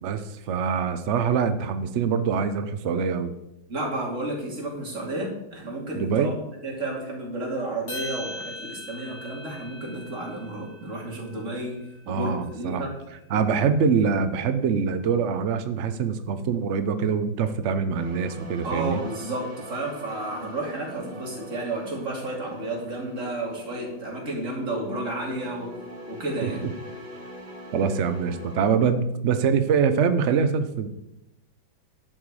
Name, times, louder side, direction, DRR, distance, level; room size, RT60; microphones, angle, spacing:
voice 1, 0.0-3.3 5.9-6.3 12.1-12.8 13.3-19.0 26.4-26.5 27.7-30.9, right 6 dB, 80° right, 9 dB, 0.6 m, -24 dB
voice 2, 3.7-6.3 6.6-11.8 12.0-12.9 18.6-25.7 26.1-26.6, right 2 dB, 40° right, -2 dB, 3.0 m, -31 dB
sound 1, 7.9-12.3, left 1 dB, 50° left, 4.3 m, -40 dB
sound 2, 17.9-28.7, equal, 60° right, 3.4 m, -42 dB
11.0 x 7.9 x 4.8 m, 0.86 s
omnidirectional pair, 2.2 m